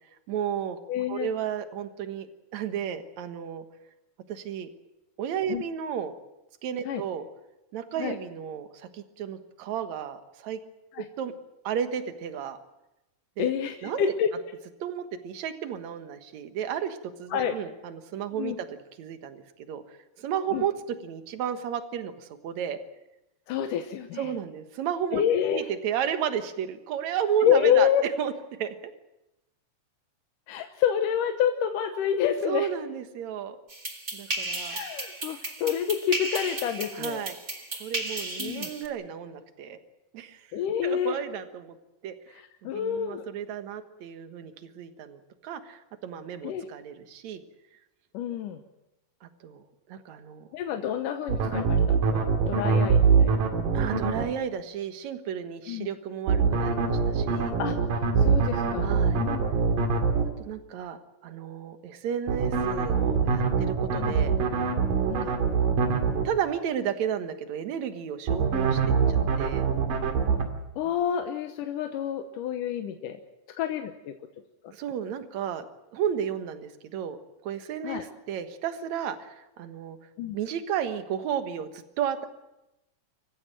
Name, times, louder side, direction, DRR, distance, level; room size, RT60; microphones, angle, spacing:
voice 1, 0.3-0.8 1.1-2.3 2.5-3.7 4.3-4.7 5.2-6.1 6.6-7.2 7.7-10.6 11.2-11.3 11.6-12.6 13.4-13.5 13.8-14.1 14.8-19.8 20.2-20.7 21.0-22.8 24.2-25.2 25.5-27.9 28.2-28.3 28.6-28.8 32.5-33.6 34.1-34.8 36.9-37.4 37.8-39.8 40.1-40.5 40.8-41.8 42.0-47.4 49.2-49.6 49.9-50.5 53.7-57.6 58.8-59.2 60.4-64.3 65.1-65.3 66.2-69.6 74.7-75.7 75.9-77.2 77.4-80.0 80.3-82.3, right 8 dB, 60° right, 9 dB, 2.6 m, -33 dB
voice 2, 0.9-1.3 5.5-5.6 6.9-7.0 8.0-8.2 10.9-11.1 13.4-14.3 17.3-17.6 18.4-18.6 20.5-20.6 23.5-24.3 25.1-25.7 27.4-28.1 30.5-32.7 34.7-37.2 38.4-38.7 40.5-41.2 42.3-43.3 46.4-46.7 48.1-48.6 50.5-53.5 55.7-55.9 57.6-57.7 58.2-59.5 64.0-64.1 65.1-65.3 70.8-73.2 73.6-74.2 74.6-74.7 77.8-78.1 80.2-80.4, left 9 dB, 80° left, 6 dB, 2.6 m, -28 dB
sound 1, 33.7-38.9, right 2 dB, 25° right, 1.3 m, -34 dB
sound 2, 51.3-54.2 56.3-60.2 62.3-66.2 68.3-70.4, right 5 dB, 80° right, 3.9 m, -23 dB
26.0 x 15.0 x 9.0 m, 0.93 s
omnidirectional pair, 3.8 m